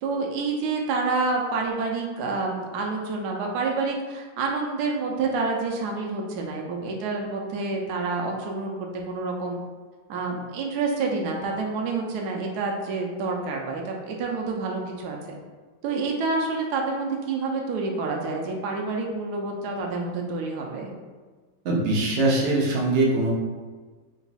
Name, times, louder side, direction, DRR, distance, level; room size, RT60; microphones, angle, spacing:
voice 1, 0.0-9.6 10.1-15.2 15.8-20.9, right 3 dB, 70° right, 0 dB, 1.0 m, -28 dB
voice 2, 21.6-23.3, right 2 dB, 90° right, -3 dB, 0.6 m, -22 dB
3.8 x 2.3 x 4.0 m, 1.4 s
omnidirectional pair, 2.1 m